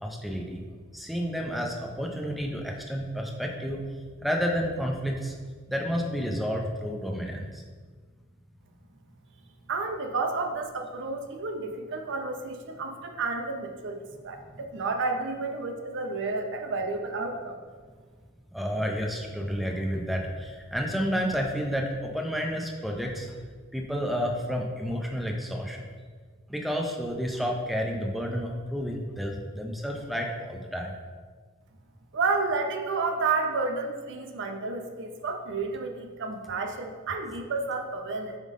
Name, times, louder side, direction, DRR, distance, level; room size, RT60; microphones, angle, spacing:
voice 1, 0.0-0.6 0.9-3.8 4.2-5.4 5.7-7.6 18.5-23.4 23.7-25.8 26.5-30.9, equal, ahead, 1 dB, 0.5 m, -30 dB
voice 2, 9.7-17.6 32.1-38.4, right 3 dB, 60° right, 4 dB, 0.6 m, -31 dB
7.5 x 3.7 x 3.6 m, 1.5 s
head